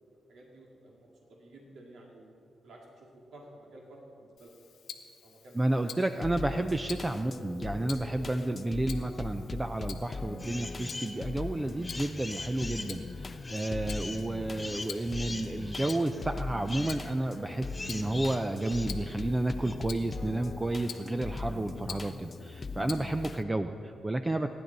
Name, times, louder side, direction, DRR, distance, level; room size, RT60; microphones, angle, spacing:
voice 1, 0.0-2.3 2.6-4.5 5.2-6.0, right 1 dB, 75° right, -1 dB, 2.1 m, -53 dB
Tick-tock, 4.4-23.4, left 8 dB, 85° left, 1.0 m, -49 dB
voice 2, 5.5-24.6, right 2 dB, 20° right, 7 dB, 0.6 m, -31 dB
sound 1, 6.2-23.4, left 3 dB, 40° left, 0.7 m, -40 dB
sound 2, 10.4-11.2 11.6-19.7, left 2 dB, 20° left, 1.5 m, -42 dB
24.5 x 10.5 x 4.0 m, 2.8 s
cardioid pair, 70°, 0 cm